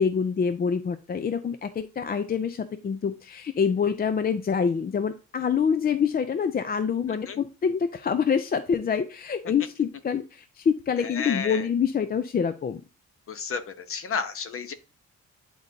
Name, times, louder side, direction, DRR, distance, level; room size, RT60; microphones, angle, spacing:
voice 1, 0.0-12.8, left 6 dB, 30° left, 11 dB, 0.5 m, -26 dB
voice 2, 11.1-11.6 13.3-14.7, left 6 dB, 45° left, 11 dB, 0.9 m, -31 dB
10.0 x 3.9 x 2.7 m, 0.33 s
cardioid pair, 90°, 30 cm